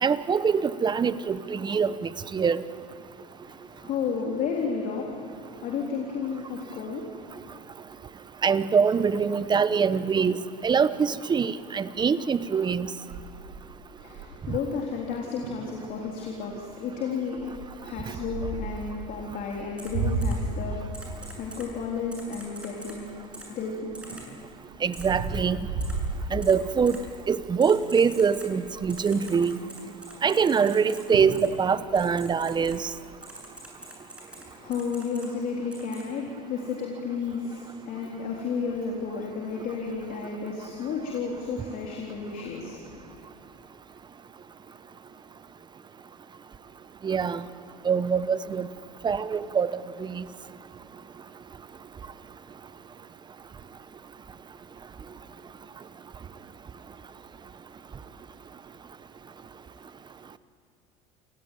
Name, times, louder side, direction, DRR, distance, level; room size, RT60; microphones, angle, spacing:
voice 1, 0.0-2.6 8.4-12.9 24.8-25.6 26.3-27.0 27.3-29.6 30.2-32.9 47.0-47.4 47.8-48.7 49.0-49.7 50.0-50.2, right 6 dB, 25° right, 14 dB, 1.0 m, -24 dB
voice 2, 3.4-7.6 14.0-24.0 34.3-43.2, left 5 dB, 60° left, 0 dB, 3.8 m, -33 dB
sound 1, 13.1-14.6 15.1-15.2 15.4-15.7 16.2-16.5 17.4-18.8 19.5-23.4 23.9-26.9 27.4-27.7 27.9-28.0 28.3-29.0 30.7-30.8 31.1-31.5 31.8-32.8, right 3 dB, 70° right, 7.7 m, -33 dB
Typing, 19.8-19.9 20.2-20.3 20.9-21.6 22.1-22.9 23.3-23.5 23.9-24.2 24.9-25.0 25.8-25.9 26.4-26.5 26.9-27.0 27.6-28.5 28.9-31.0 31.3-31.5 31.9-32.7 33.2-34.4 34.7-35.3 35.7-36.0, right 1 dB, 5° right, 7.5 m, -44 dB
29.0 x 16.5 x 9.4 m, 2.6 s
supercardioid pair, 100°, 16 cm